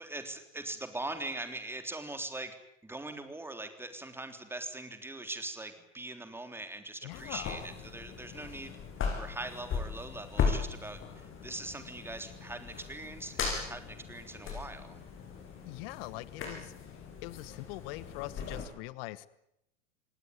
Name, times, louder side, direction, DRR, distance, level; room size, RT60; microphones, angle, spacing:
voice 1, 0.0-2.6 2.8-8.8 9.2-15.0, right 2 dB, 5° right, 7 dB, 3.6 m, -41 dB
voice 2, 7.0-7.5 15.6-19.3, left 19 dB, 50° left, 19 dB, 1.2 m, -43 dB
sound 1, 7.1-18.7, left 6 dB, 30° left, 7.8 m, -38 dB
28.5 x 19.0 x 9.6 m, 0.83 s
hypercardioid pair, 100°, 39 cm